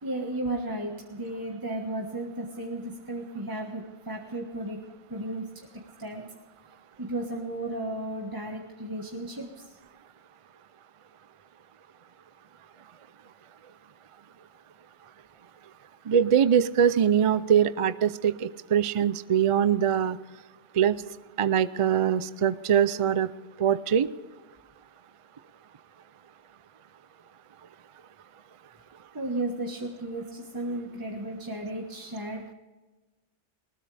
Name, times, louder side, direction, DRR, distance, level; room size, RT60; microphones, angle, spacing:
voice 1, 0.0-4.8 5.1-5.7 6.0-6.3 7.0-9.8 29.1-32.4, right 1 dB, 20° right, 0 dB, 1.4 m, -34 dB
voice 2, 16.1-20.2 20.7-21.0 21.4-23.3 23.6-24.1, right 8 dB, 50° right, 15 dB, 0.4 m, -23 dB
20.5 x 19.5 x 3.4 m, 1.2 s
omnidirectional pair, 1.2 m